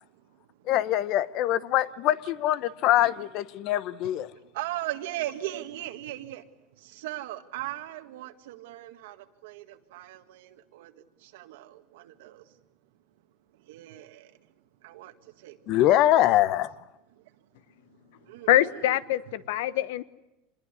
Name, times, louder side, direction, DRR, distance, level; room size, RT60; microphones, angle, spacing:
voice 1, 0.0-0.7 4.4-6.5 6.7-12.6 13.5-14.5 14.8-15.9 16.1-16.3 17.1-17.4 17.9-19.0, right 15 dB, 85° right, 8 dB, 1.8 m, -39 dB
voice 2, 0.7-4.3 15.7-16.7, left 13 dB, 50° left, 17 dB, 0.9 m, -23 dB
voice 3, 18.5-20.0, left 13 dB, 80° left, 16 dB, 1.1 m, -24 dB
26.0 x 21.0 x 9.7 m, 0.93 s
supercardioid pair, 135°, 0 cm